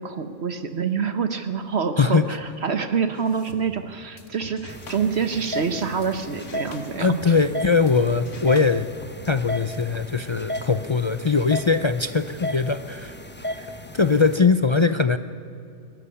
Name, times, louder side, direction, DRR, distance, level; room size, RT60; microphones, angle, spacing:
voice 1, 0.0-7.3 13.6-13.7, right 6 dB, 60° right, 9 dB, 1.2 m, -26 dB
voice 2, 2.0-2.4 7.0-8.9 9.3-13.2 13.9-15.2, left 4 dB, 45° left, 10 dB, 0.3 m, -21 dB
sound 1, 3.1-6.1 6.4-10.0, left 3 dB, 80° left, 1.8 m, -44 dB
sound 2, 4.7-14.4, left 1 dB, 10° left, 1.0 m, -35 dB
21.0 x 14.0 x 9.8 m, 2.4 s
omnidirectional pair, 1.3 m